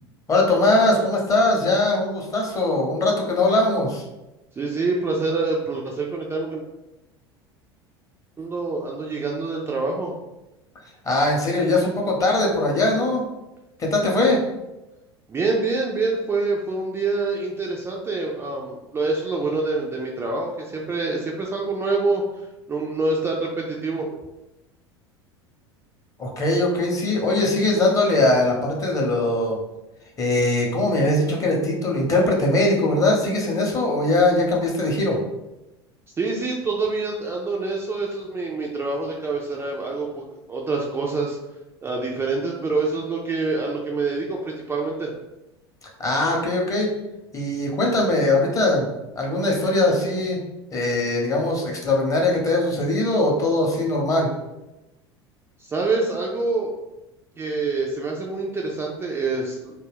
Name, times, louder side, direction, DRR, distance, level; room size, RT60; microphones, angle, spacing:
voice 1, 0.3-4.0 11.0-13.2 13.8-14.4 26.2-29.6 30.2-35.2 46.0-46.9 47.3-48.9 49.2-50.4 50.7-54.3, left 2 dB, 25° left, -1 dB, 0.7 m, -21 dB
voice 2, 4.6-6.6 8.4-10.2 15.3-24.2 36.2-41.4 41.8-45.1 55.6-56.7 57.4-59.7, right 3 dB, 15° right, -1 dB, 0.3 m, -26 dB
2.3 x 2.2 x 3.4 m, 0.97 s
figure-of-eight pair, 75°, 14 cm